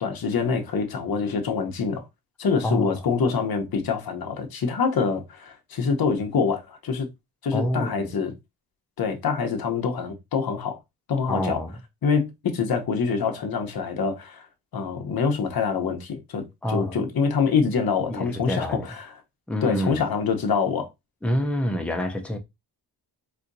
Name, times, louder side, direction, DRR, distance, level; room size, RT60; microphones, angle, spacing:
voice 1, 0.0-2.1 2.4-7.1 7.4-8.3 9.0-10.8 11.1-11.6 12.0-14.5 14.7-16.4 16.7-19.1 19.6-20.9, left 5 dB, 60° left, 0.9 m, -25 dB
voice 2, 2.6-3.0 7.5-8.1 11.3-11.7 16.6-17.0 18.1-18.9 19.5-20.0 21.2-22.4, equal, 5° left, 0.5 m, -27 dB
4.3 x 2.6 x 2.6 m
wide cardioid pair, 140°, 41 cm